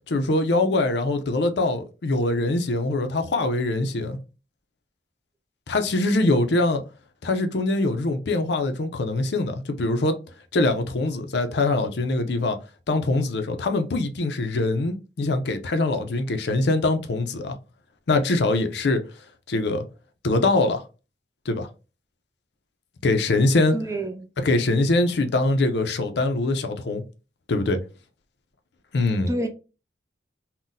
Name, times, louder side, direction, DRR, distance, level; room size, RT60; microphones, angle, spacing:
voice 1, 0.1-4.2 5.7-6.8 7.2-10.2 10.5-12.6 12.9-17.6 18.1-19.0 19.5-19.8 20.2-20.8 21.5-21.7 23.0-23.7 24.4-27.0 27.5-27.8 28.9-29.3, left 2 dB, 65° left, 0.5 m, -23 dB
voice 2, 23.7-24.3 29.3-29.5, right 1 dB, 15° right, 0.4 m, -28 dB
2.6 x 2.1 x 3.8 m
head